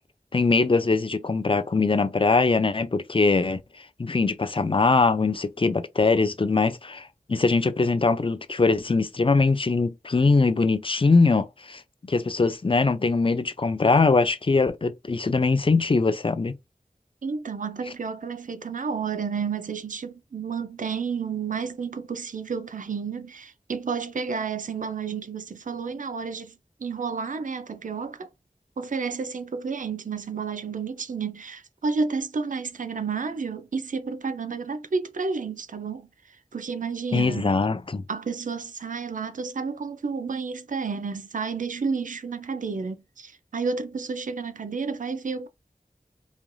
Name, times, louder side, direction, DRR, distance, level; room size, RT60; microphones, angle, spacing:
voice 1, 0.3-3.6 4.0-16.5 37.1-38.0, left 3 dB, 35° left, 0.4 m, -22 dB
voice 2, 17.2-28.3 28.8-37.6 38.1-45.5, right 5 dB, 60° right, 0.4 m, -31 dB
3.1 x 2.5 x 2.2 m
wide cardioid pair, 45°, 15 cm